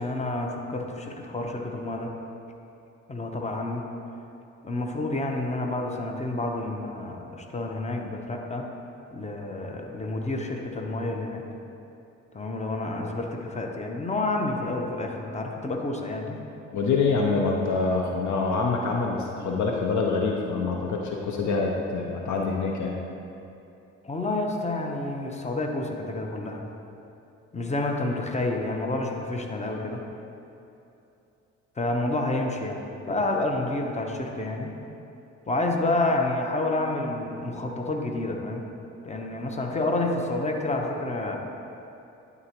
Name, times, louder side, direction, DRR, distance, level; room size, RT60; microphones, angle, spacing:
voice 1, 0.0-2.1 3.1-3.9 4.6-8.7 9.1-11.4 12.3-16.4 24.0-26.6 27.5-30.0 31.8-32.8 33.1-34.7 35.5-38.6 39.0-41.3, left 2 dB, 20° left, 1 dB, 1.0 m, -29 dB
voice 2, 16.7-23.0, left 4 dB, 55° left, 0 dB, 0.8 m, -25 dB
11.0 x 4.0 x 3.0 m, 2.8 s
hypercardioid pair, 50°, 35 cm